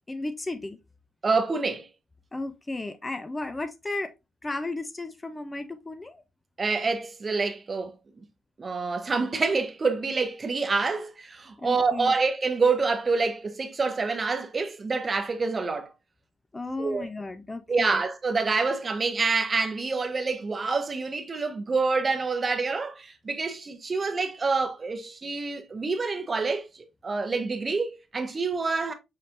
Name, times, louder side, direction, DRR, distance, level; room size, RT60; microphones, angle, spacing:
voice 1, 0.1-0.8 2.3-4.1 4.4-6.2 11.6-12.1 16.5-18.0, left 2 dB, 20° left, 0.5 m, -34 dB
voice 2, 1.2-1.9 6.6-7.9 8.6-15.9 16.8-17.1 17.7-28.9, right 4 dB, 35° right, 0.9 m, -27 dB
5.7 x 3.2 x 2.6 m
cardioid pair, 90°, 0 cm